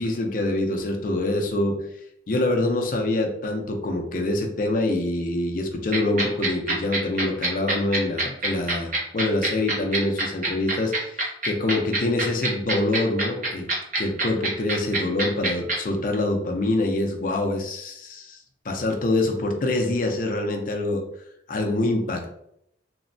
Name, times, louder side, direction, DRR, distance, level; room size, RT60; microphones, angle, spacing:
voice 1, 0.0-1.8 2.3-13.7 14.0-18.4 18.7-21.0 21.5-22.3, left 2 dB, 45° left, 3 dB, 0.4 m, -25 dB
sound 1, 5.9-15.7, right 2 dB, 45° right, 0.7 m, -24 dB
3.0 x 2.1 x 2.5 m, 0.75 s
head